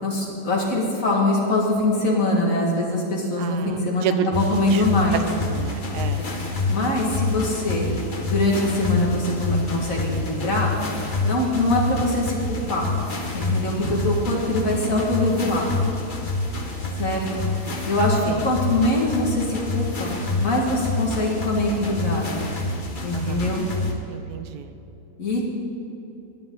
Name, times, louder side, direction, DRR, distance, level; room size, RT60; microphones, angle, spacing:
voice 1, 0.0-5.2 6.2-6.3 6.7-7.9 8.2-10.7 11.2-12.9 13.3-15.7 17.0-17.5 17.9-20.1 20.4-22.4 23.0-23.6 25.2-25.4, left 1 dB, 55° left, -2 dB, 2.4 m, -23 dB
voice 2, 3.4-4.8 5.1-6.2 18.3-18.4 23.1-23.5 24.1-24.7, right 8 dB, 75° right, 10 dB, 1.2 m, -30 dB
sound 1, 4.3-23.9, left 3 dB, 35° left, 1.1 m, -27 dB
18.0 x 11.0 x 3.9 m, 2.9 s
omnidirectional pair, 1.7 m